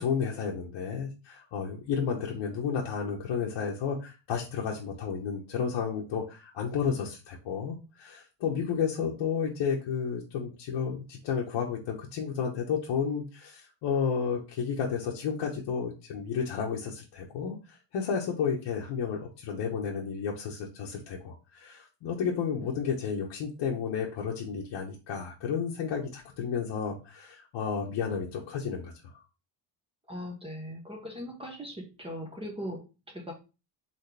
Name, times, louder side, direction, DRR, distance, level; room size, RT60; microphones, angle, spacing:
voice 1, 0.0-29.1, left 6 dB, 70° left, -2 dB, 1.1 m, -32 dB
voice 2, 30.1-33.3, equal, 10° right, 0 dB, 1.0 m, -39 dB
4.2 x 3.5 x 3.3 m, 0.31 s
cardioid pair, 130°, 47 cm